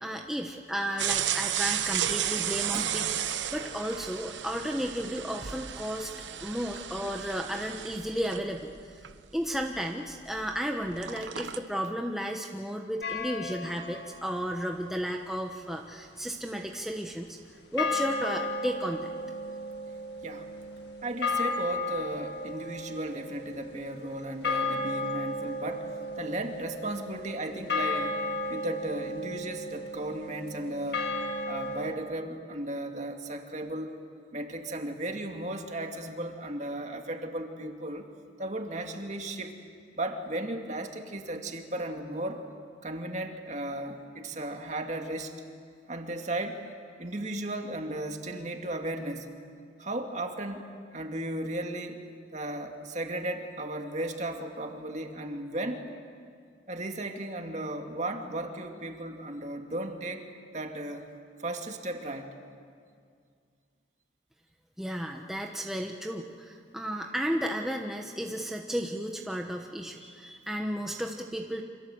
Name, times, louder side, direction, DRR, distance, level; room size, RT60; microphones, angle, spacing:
voice 1, 0.0-3.1 3.5-6.1 6.4-8.9 9.3-17.4 17.7-19.1 64.8-71.6, equal, ahead, 1 dB, 1.1 m, -33 dB
sound 1, 1.0-10.6 10.8-11.6, right 10 dB, 85° right, 1.0 m, -33 dB
sound 2, 13.0-14.1 17.8-31.9, left 2 dB, 65° left, 2.1 m, -34 dB
voice 2, 21.0-28.2 28.5-31.1 31.5-34.0 34.3-38.1 38.4-39.5 39.9-42.4 42.8-45.3 45.9-46.6 47.0-49.3 49.8-52.0 52.3-55.9 56.7-60.2 60.5-61.1 61.4-62.3, right 1 dB, 40° right, 4 dB, 2.2 m, -35 dB
29.0 x 26.0 x 7.9 m, 2.2 s
head